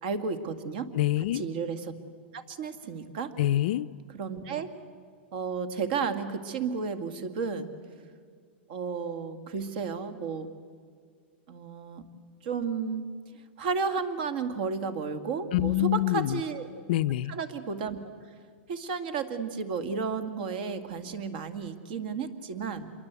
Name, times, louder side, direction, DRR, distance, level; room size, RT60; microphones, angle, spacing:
voice 1, 0.0-0.9 1.3-1.9 2.3-3.3 4.1-4.7 5.3-7.7 8.7-10.5 11.5-12.0 12.4-13.1 13.6-16.7 17.3-18.0 18.7-22.9, right 5 dB, 50° right, 10 dB, 2.1 m, -32 dB
voice 2, 0.9-1.4 3.4-3.9 15.5-16.4 16.9-17.3, left 14 dB, 50° left, 11 dB, 0.6 m, -25 dB
27.0 x 22.5 x 8.3 m, 2.1 s
supercardioid pair, 165°, 6 cm